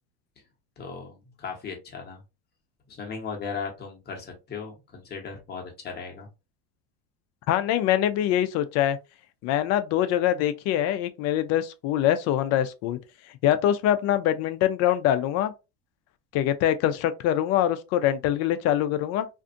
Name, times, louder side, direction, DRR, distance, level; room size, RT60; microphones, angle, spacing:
voice 1, 0.8-2.2 2.9-6.3, left 5 dB, 30° left, 1.0 m, -37 dB
voice 2, 7.5-9.0 9.4-13.0 13.4-15.5 16.3-19.3, left 11 dB, 50° left, 0.5 m, -24 dB
2.6 x 2.4 x 2.5 m
supercardioid pair, 120°, 32 cm